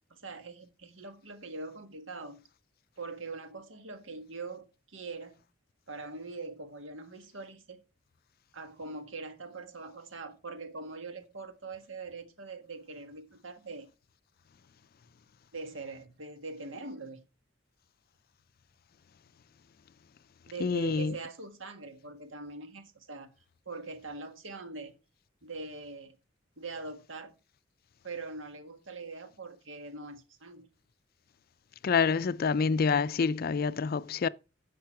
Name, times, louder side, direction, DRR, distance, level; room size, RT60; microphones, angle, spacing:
voice 1, 0.1-2.5 3.0-5.4 5.9-7.8 8.5-13.9 15.5-17.2 20.5-23.3 23.6-24.9 25.4-26.2 26.6-27.3 28.0-30.7, right 3 dB, 80° right, 1.6 m, -42 dB
voice 2, 20.6-21.1 31.8-34.3, left 5 dB, 50° left, 0.4 m, -27 dB
10.5 x 6.7 x 4.6 m
head